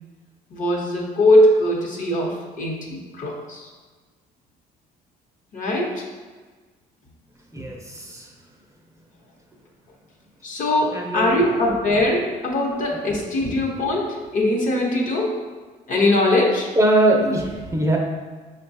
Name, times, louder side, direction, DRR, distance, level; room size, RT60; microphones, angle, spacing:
voice 1, 0.5-3.7 5.5-6.1 10.4-15.4 15.9-16.7, left 1 dB, 50° left, -1 dB, 0.9 m, -21 dB
voice 2, 7.5-8.3 10.9-11.4 13.2-13.6 16.8-18.0, right 1 dB, 20° right, -1 dB, 0.5 m, -22 dB
6.1 x 2.2 x 2.6 m, 1.4 s
cardioid pair, 110°, 17 cm